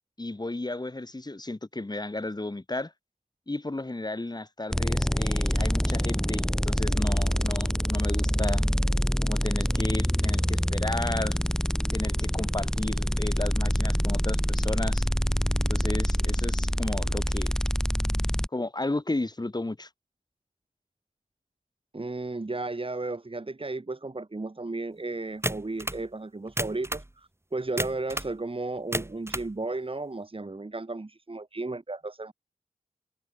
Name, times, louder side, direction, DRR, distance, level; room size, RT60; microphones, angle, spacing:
voice 1, 0.2-2.9 3.5-8.6 9.2-11.4 11.9-15.1 15.7-17.5 18.5-19.9, left 2 dB, 25° left, 1.5 m, -33 dB
sound 1, 4.7-18.5, equal, 5° left, 1.5 m, -26 dB
voice 2, 21.9-32.3, right 2 dB, 35° right, 1.5 m, -34 dB
sound 2, 25.4-26.0 26.5-27.1 27.8-28.3 28.8-29.5, right 1 dB, 15° right, 2.2 m, -32 dB
wide cardioid pair, 70°, 15 cm